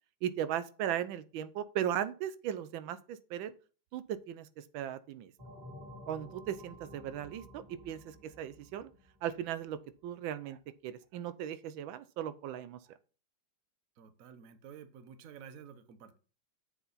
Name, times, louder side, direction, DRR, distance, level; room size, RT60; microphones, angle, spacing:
voice 1, 0.2-3.5 3.9-5.3 6.1-8.9 9.2-10.6 10.8-12.8, right 10 dB, 85° right, 1.4 m, -37 dB
sound 1, 5.4-9.8, equal, 15° right, 2.3 m, -52 dB
voice 2, 14.0-16.2, right 7 dB, 55° right, 1.1 m, -51 dB
7.4 x 6.6 x 4.0 m
omnidirectional pair, 2.1 m